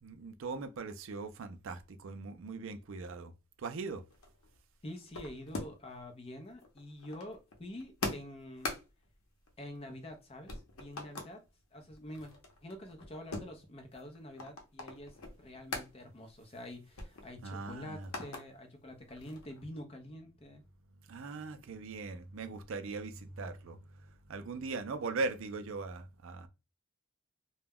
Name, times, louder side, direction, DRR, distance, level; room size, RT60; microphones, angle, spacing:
voice 1, 0.0-3.3 3.6-4.0 17.4-18.1 21.1-23.8 24.3-26.5, right 3 dB, 65° right, 0.4 m, -40 dB
sound 1, 4.1-6.0 6.3-10.2 10.5-11.4 11.8-15.9 16.3-16.4 16.7-18.4 18.9-19.7, left 2 dB, 80° left, 0.7 m, -43 dB
voice 2, 4.8-8.7 9.6-11.4 11.7-12.3 12.6-20.6, left 1 dB, 25° left, 0.5 m, -47 dB
2.2 x 2.1 x 3.4 m
head